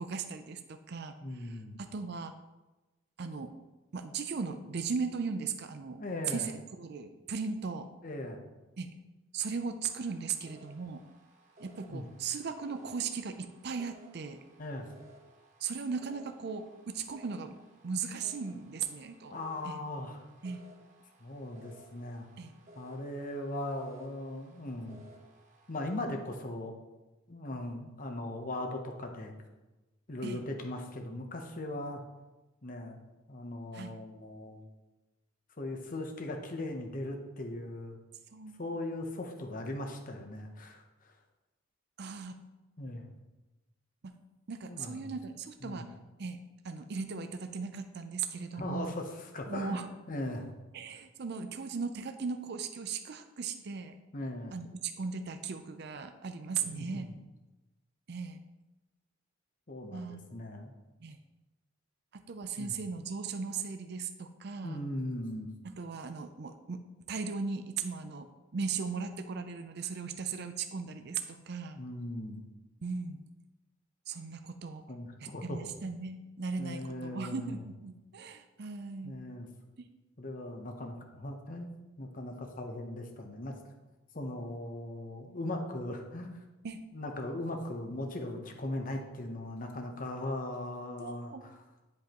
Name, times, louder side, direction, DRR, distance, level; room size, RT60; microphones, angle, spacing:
voice 1, 0.0-2.3 3.2-3.5 3.9-7.9 8.8-8.9 9.3-11.0 11.6-14.4 15.6-17.6 17.8-19.4 19.6-19.8 20.4-20.6 22.4-22.5 30.2-30.4 33.7-33.9 38.3-38.6 42.0-42.4 44.0-44.2 44.5-45.8 46.2-46.4 46.6-48.9 49.5-49.9 50.7-54.0 54.5-57.1 58.1-58.4 59.9-60.2 61.0-61.2 62.1-64.8 65.6-68.3 68.5-71.8 72.8-73.2 74.1-74.8 75.2-79.2 86.6-86.8 91.0-91.4, right 5 dB, 55° right, 8 dB, 0.5 m, -37 dB
voice 2, 1.2-1.8 6.0-6.5 8.0-8.4 11.9-12.1 14.6-14.9 19.3-20.2 21.2-22.3 22.7-25.0 25.7-26.7 27.3-29.4 30.1-32.0 32.6-33.0 33.3-34.6 35.6-38.0 38.6-40.8 42.8-43.0 44.7-45.0 45.6-45.8 48.5-49.1 49.3-49.8 50.1-50.5 54.1-54.5 56.6-57.1 59.7-60.7 62.6-62.7 64.6-65.5 71.8-72.5 74.9-75.7 76.6-77.6 79.0-79.5 80.2-81.7 82.0-83.5 84.1-86.4 86.9-91.3, left 1 dB, 40° left, 3 dB, 0.9 m, -39 dB
sound 1, 10.0-26.0, right 1 dB, 40° right, 1.0 m, -58 dB
10.5 x 5.3 x 3.0 m, 1.1 s
head